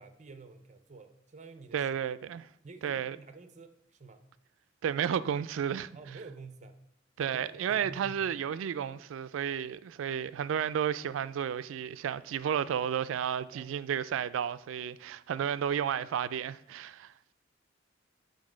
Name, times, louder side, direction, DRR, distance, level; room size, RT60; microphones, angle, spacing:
voice 1, 0.0-2.0 2.6-4.3 5.9-6.8 7.2-8.2 8.8-9.0 13.5-13.9, right 4 dB, 40° right, 0.6 m, -49 dB
voice 2, 1.7-2.5 2.8-3.2 4.8-5.9 7.2-17.1, right 8 dB, 80° right, 0.3 m, -32 dB
8.5 x 3.9 x 4.9 m
head